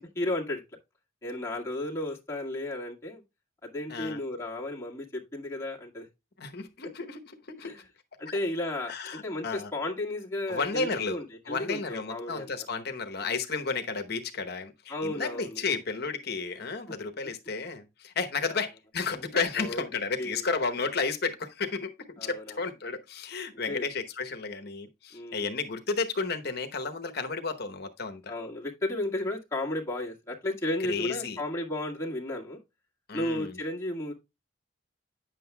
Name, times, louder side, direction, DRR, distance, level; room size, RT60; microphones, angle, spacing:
voice 1, 0.2-0.6 1.2-3.2 3.6-6.1 7.6-7.8 8.2-8.9 9.2-12.5 14.9-15.6 18.5-18.6 19.6-19.8 20.2-20.5 22.2-22.6 23.7-23.9 25.1-25.5 28.3-32.6 33.1-34.1, left 1 dB, 15° left, 1.8 m, -33 dB
voice 2, 6.4-7.7 8.3-8.4 8.9-9.7 10.5-11.2 11.5-28.3 30.9-31.4 33.1-33.6, left 4 dB, 55° left, 1.0 m, -32 dB
9.5 x 7.6 x 2.2 m
head